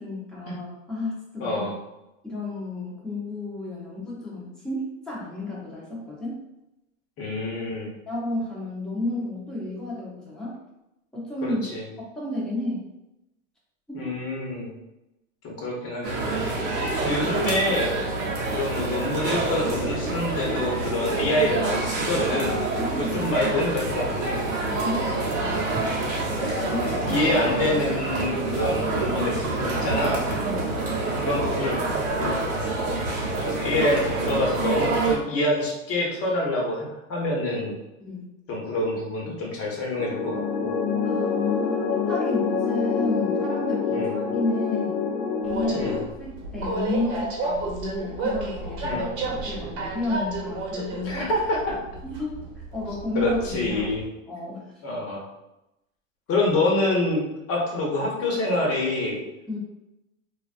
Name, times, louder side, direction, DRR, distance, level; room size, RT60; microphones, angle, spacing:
voice 1, 0.0-1.6 2.2-6.4 8.1-10.6 11.1-11.6 12.1-12.9 13.9-14.1 18.2-18.3 22.7-23.2 24.6-25.6 26.7-27.3 30.4-30.7 38.0-38.2 41.0-45.0 45.4-51.3 52.2-52.4 52.7-53.9 54.3-54.7 59.5-59.6, left 2 dB, ahead, -7 dB, 0.9 m, -32 dB
voice 2, 1.4-1.8 7.2-7.9 11.4-11.8 13.9-14.7 15.4-16.5 17.0-18.0 18.5-22.6 23.0-24.4 26.4-26.7 27.0-30.2 31.2-31.8 32.1-32.4 33.4-37.8 38.5-40.8 43.9-44.2 45.7-46.0 48.8-49.1 51.0-51.7 53.1-54.0 54.8-55.2 56.3-59.2, left 2 dB, 40° left, -2 dB, 0.9 m, -26 dB
sound 1, 16.0-35.1, right 3 dB, 75° right, 0.9 m, -27 dB
sound 2, 40.0-46.0, left 5 dB, 55° left, 0.5 m, -26 dB
Train, 45.4-54.1, right 2 dB, 50° right, 1.0 m, -32 dB
2.4 x 2.3 x 2.4 m, 0.92 s
hypercardioid pair, 110°, 38 cm